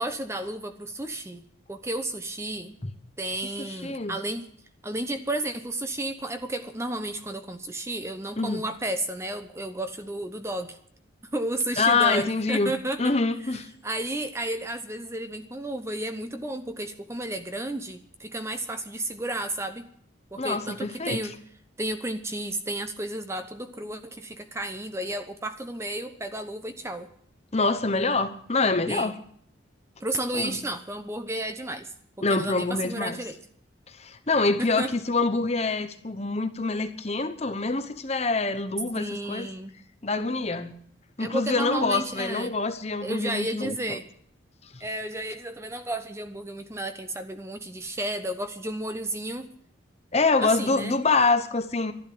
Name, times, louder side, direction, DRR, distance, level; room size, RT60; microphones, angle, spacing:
voice 1, 0.0-1.4 1.7-2.8 3.2-4.5 4.8-10.8 11.3-13.1 13.5-13.6 13.8-19.9 20.3-21.4 21.8-27.1 28.9-29.1 30.0-31.9 32.3-33.4 34.6-34.9 39.0-39.8 41.2-42.6 43.0-44.0 44.8-49.5 50.4-51.0, right 1 dB, 15° right, 8 dB, 0.8 m, -32 dB
voice 2, 3.6-4.2 8.4-8.6 11.8-12.7 13.0-13.7 20.4-21.2 27.5-29.2 30.3-30.6 32.2-33.2 33.9-39.5 40.0-40.7 41.2-44.0 50.1-51.9, left 3 dB, 35° left, 9 dB, 1.0 m, -25 dB
12.0 x 11.5 x 8.9 m, 0.64 s
head